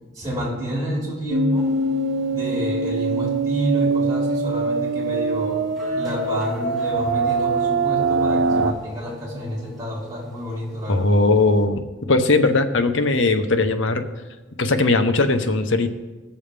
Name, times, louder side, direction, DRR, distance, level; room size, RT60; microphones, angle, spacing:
voice 1, 0.1-1.7 2.3-5.6 5.9-11.2, equal, 20° right, -4 dB, 4.0 m, -29 dB
sound 1, 1.3-8.7, right 3 dB, 80° right, 0.7 m, -23 dB
sound 2, 1.5-11.6, left 1 dB, ahead, 2.6 m, -42 dB
voice 2, 10.9-11.8 12.1-14.0 14.6-15.9, left 3 dB, 70° left, 8 dB, 0.9 m, -19 dB
18.0 x 7.1 x 3.4 m, 1.2 s
head